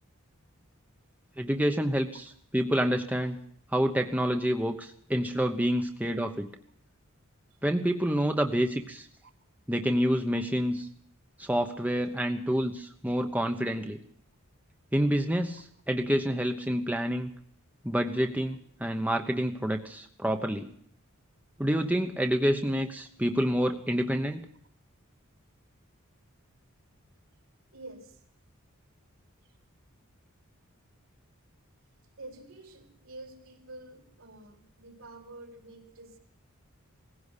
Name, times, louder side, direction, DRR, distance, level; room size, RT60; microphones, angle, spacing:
voice 1, 1.4-2.3 2.5-3.4 3.7-6.5 7.6-9.1 9.7-10.9 11.4-14.0 14.9-17.3 17.8-20.7 21.6-24.5, equal, 5° right, 5 dB, 1.0 m, -28 dB
voice 2, 27.7-28.2 29.4-29.5 32.2-36.2, right 2 dB, 65° right, 4 dB, 4.8 m, -48 dB
19.5 x 16.0 x 8.4 m, 0.63 s
head